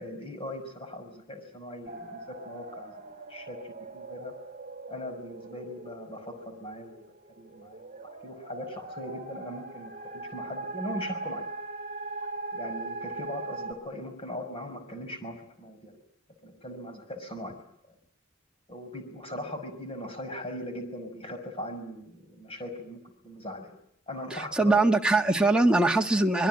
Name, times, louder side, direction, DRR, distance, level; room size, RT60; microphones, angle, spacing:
voice 1, 0.0-2.9 3.3-4.3 4.9-7.0 7.4-11.5 12.5-15.9 16.4-18.0 18.7-23.8 24.1-24.8, left 1 dB, 30° left, 6 dB, 5.8 m, -40 dB
sound 1, 1.9-13.7, right 3 dB, 30° right, 4.2 m, -40 dB
voice 2, 24.3-26.5, right 2 dB, 5° right, 2 dB, 1.5 m, -22 dB
25.0 x 22.0 x 9.0 m, 0.74 s
head